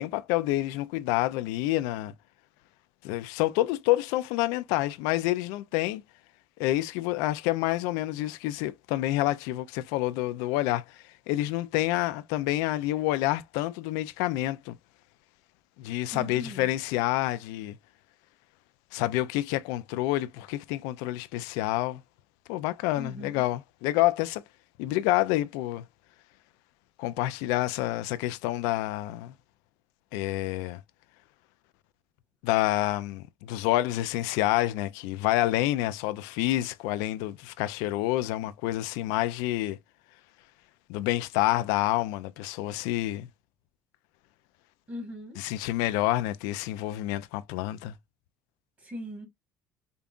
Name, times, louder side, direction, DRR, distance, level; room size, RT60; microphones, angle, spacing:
voice 1, 0.0-2.1 3.0-6.0 6.6-14.8 15.8-17.8 18.9-22.0 22.5-24.4 24.8-25.8 27.0-29.3 30.1-30.8 32.4-39.8 40.9-43.3 45.4-47.9, left 16 dB, 85° left, 0.4 m, -28 dB
voice 2, 16.1-16.7 23.0-23.5 44.9-45.4 48.8-49.3, equal, 25° right, 2.4 m, -40 dB
5.2 x 2.3 x 2.4 m
cardioid pair, 115°, 6 cm